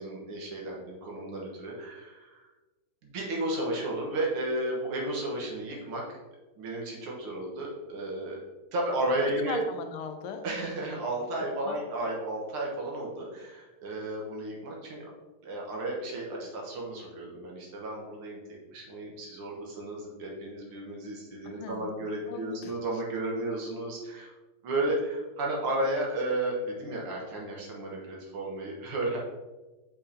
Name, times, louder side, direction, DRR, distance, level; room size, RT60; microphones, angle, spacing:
voice 1, 0.0-2.4 3.0-6.2 6.6-8.4 8.7-9.6 10.4-15.0 15.4-24.3 24.6-29.2, right 1 dB, 80° right, -2 dB, 2.2 m, -33 dB
voice 2, 9.4-10.4 11.6-11.7 21.4-22.0 22.3-22.7, left 5 dB, 85° left, 6 dB, 1.6 m, -38 dB
6.5 x 5.5 x 2.8 m, 1.2 s
omnidirectional pair, 2.4 m